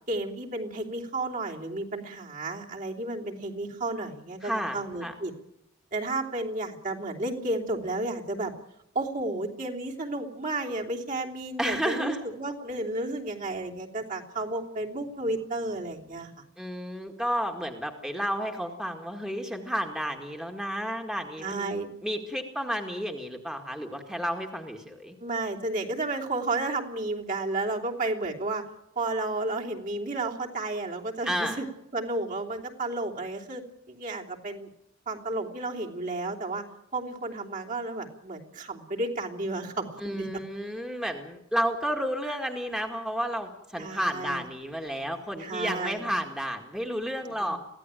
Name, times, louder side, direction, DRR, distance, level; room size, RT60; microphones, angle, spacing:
voice 1, 0.1-5.3 5.9-8.5 8.9-16.3 21.4-21.9 25.2-28.6 28.9-31.6 31.9-33.6 33.9-34.7 35.1-36.6 36.9-40.4 43.8-44.4 45.4-46.1 47.2-47.6, right 2 dB, 40° right, -1 dB, 3.2 m, -32 dB
voice 2, 4.4-5.1 11.6-12.2 16.6-25.2 31.3-31.6 40.0-47.6, equal, 5° right, 3 dB, 1.9 m, -31 dB
23.5 x 16.5 x 9.1 m, 0.80 s
head